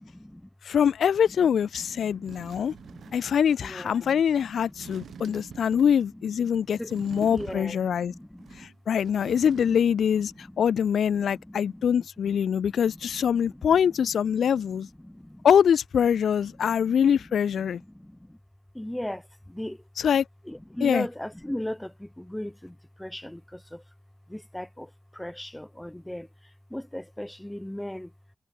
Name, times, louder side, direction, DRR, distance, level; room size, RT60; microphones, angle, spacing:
voice 1, 0.0-0.5 1.8-5.8 6.1-8.7 9.3-9.5 10.3-10.7 11.2-13.6 14.3-15.5 16.4-16.9 17.6-18.4 18.7-19.8 20.4-23.8 24.3-26.3 26.7-28.1, left 1 dB, 10° left, 3.0 m, -39 dB
voice 2, 0.6-2.7 3.1-8.1 8.6-14.9 15.4-17.8 20.0-20.2 20.8-21.1, left 8 dB, 90° left, 0.5 m, -24 dB
sound 1, 1.8-1.9 2.2-3.4 4.7-6.1 6.9-8.0 8.4-10.1 10.3-10.4, right 8 dB, 90° right, 7.0 m, -46 dB
cardioid pair, 60°, 0 cm